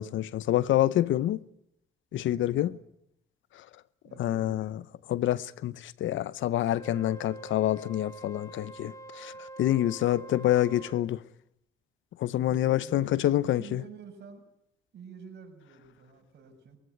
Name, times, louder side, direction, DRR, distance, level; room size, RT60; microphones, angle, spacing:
voice 1, 0.0-1.4 2.1-2.7 4.2-4.8 5.1-9.3 9.6-11.2 12.2-13.8, left 13 dB, 75° left, 0.8 m, -27 dB
voice 2, 2.1-2.8 4.0-4.7 12.3-14.5 14.9-16.8, right 5 dB, 60° right, 6.9 m, -48 dB
Wind instrument woodwind instrument, 6.7-11.1, right 2 dB, 15° left, 2.4 m, -46 dB
22.0 x 16.5 x 9.3 m
cardioid pair, 90°, 20 cm